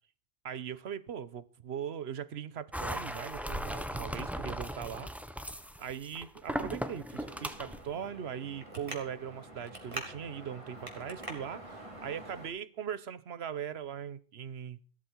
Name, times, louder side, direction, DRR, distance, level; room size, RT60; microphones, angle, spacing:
voice 1, 0.4-5.1 5.8-14.8, right 8 dB, 65° right, 1.1 m, -40 dB
sound 1, 2.7-7.8, equal, ahead, 1.0 m, -38 dB
Traffic noise roadway noise, 7.1-12.5, right 1 dB, 25° right, 3.4 m, -45 dB
15.5 x 13.5 x 4.6 m
omnidirectional pair, 1.2 m